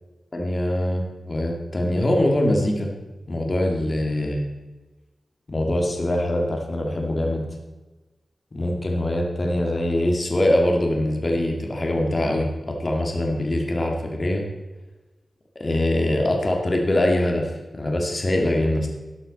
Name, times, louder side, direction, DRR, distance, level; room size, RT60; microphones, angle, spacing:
voice 1, 0.3-2.9 3.3-4.5 5.5-7.4 8.5-14.4 15.6-18.9, left 1 dB, 35° left, 1 dB, 2.2 m, -23 dB
12.0 x 12.0 x 4.2 m, 1.2 s
wide cardioid pair, 110°, 0 cm